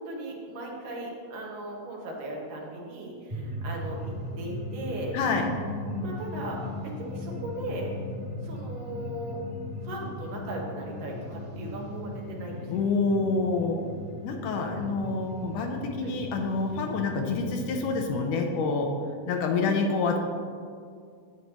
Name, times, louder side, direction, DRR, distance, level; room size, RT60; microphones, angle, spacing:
voice 1, 0.0-5.2 6.0-7.9 8.4-9.4 9.8-12.8 16.0-16.1 19.5-19.8, right 1 dB, 75° right, -1 dB, 2.9 m, -37 dB
sound 1, 3.3-18.0, left 1 dB, 20° right, 1.5 m, -38 dB
voice 2, 5.1-5.5 12.7-13.8 14.2-18.9 19.3-20.2, left 4 dB, 75° left, 3 dB, 2.1 m, -27 dB
11.5 x 8.3 x 3.0 m, 2.2 s
omnidirectional pair, 4.0 m